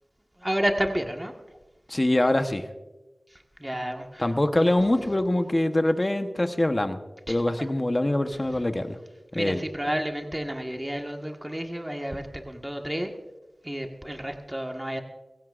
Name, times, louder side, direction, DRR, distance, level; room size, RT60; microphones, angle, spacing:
voice 1, 0.4-1.3 3.6-4.3 7.3-7.7 9.3-13.1 13.6-15.0, equal, 15° right, 3 dB, 1.5 m, -30 dB
voice 2, 1.9-2.7 4.2-7.0 7.3-9.0 9.3-9.6, left 1 dB, 30° left, 7 dB, 1.0 m, -24 dB
21.5 x 16.0 x 2.5 m, 1.1 s
wide cardioid pair, 65°, 0 cm